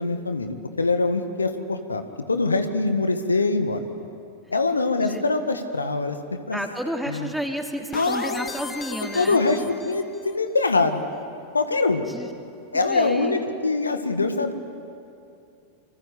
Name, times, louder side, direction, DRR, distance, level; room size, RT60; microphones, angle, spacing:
voice 1, 0.0-2.0 2.3-3.8 4.5-6.2 6.5-6.6 7.1-7.3 7.9-8.5 9.0-11.0 11.5-12.0 12.7-14.5, left 3 dB, 80° left, 7 dB, 1.7 m, -23 dB
voice 2, 6.5-9.4 12.0-12.3 12.7-13.4, equal, ahead, 2 dB, 3.2 m, -31 dB
sound 1, 7.9-10.4, left 5 dB, 20° left, 1.9 m, -38 dB
27.5 x 25.5 x 8.5 m, 2.5 s
figure-of-eight pair, 90°, 0 cm